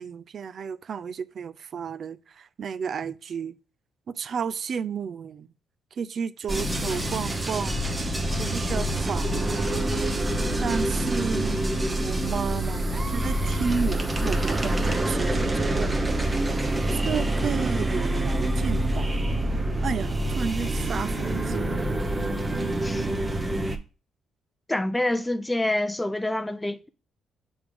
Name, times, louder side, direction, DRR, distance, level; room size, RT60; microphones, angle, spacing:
voice 1, 0.0-3.6 4.1-5.5 5.9-7.8 8.4-9.8 10.6-11.6 12.0-16.0 16.9-19.2 19.8-21.6, right 6 dB, 55° right, 0.4 m, -32 dB
sound 1, 6.5-23.8, right 1 dB, 20° right, 0.9 m, -26 dB
voice 2, 24.7-26.9, left 1 dB, 10° left, 0.5 m, -27 dB
7.1 x 3.5 x 4.9 m
cardioid pair, 90°, 0 cm